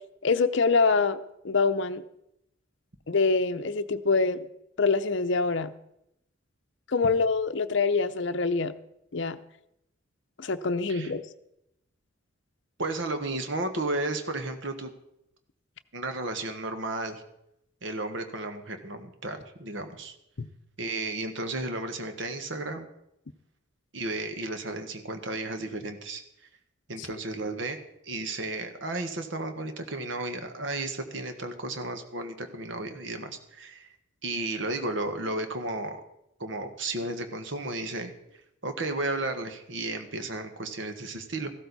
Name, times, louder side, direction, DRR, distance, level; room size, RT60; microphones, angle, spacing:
voice 1, 0.2-2.0 3.1-4.5 4.8-5.7 6.9-8.7 9.1-9.4 10.4-11.2 20.4-20.5 27.0-27.1, left 4 dB, 60° left, 11 dB, 0.7 m, -25 dB
voice 2, 12.8-14.9 15.9-17.2 17.8-20.1 20.8-22.9 23.9-26.2 26.9-27.8 28.0-33.9 34.2-36.0 36.4-38.1 38.6-41.5, right 2 dB, 60° right, 7 dB, 1.4 m, -33 dB
15.0 x 12.5 x 4.1 m, 0.80 s
head